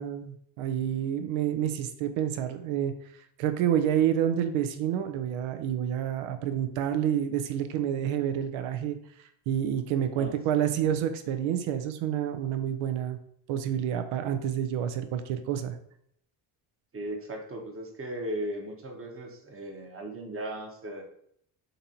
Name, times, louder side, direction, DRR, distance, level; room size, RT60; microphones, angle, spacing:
voice 1, 0.0-2.9 3.4-9.0 9.5-13.2 13.5-15.8, right 10 dB, 80° right, 8 dB, 0.6 m, -28 dB
voice 2, 10.2-10.7 16.9-21.0, right 1 dB, 30° right, 2 dB, 0.9 m, -37 dB
3.9 x 2.7 x 2.8 m, 0.69 s
supercardioid pair, 70°, 47 cm